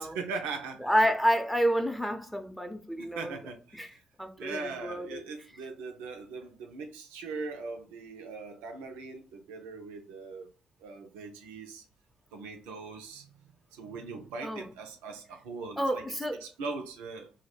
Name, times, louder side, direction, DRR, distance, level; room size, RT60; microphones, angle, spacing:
voice 1, 0.0-0.9 3.0-4.0 4.4-10.5 10.8-11.8 12.3-13.3 13.7-16.0 16.4-17.3, right 4 dB, 80° right, 0.4 m, -40 dB
voice 2, 0.8-3.4 3.7-3.9 4.2-5.2 14.4-14.7 15.8-16.4, equal, 5° left, 0.6 m, -29 dB
2.2 x 2.0 x 3.1 m
hypercardioid pair, 40°, 3 cm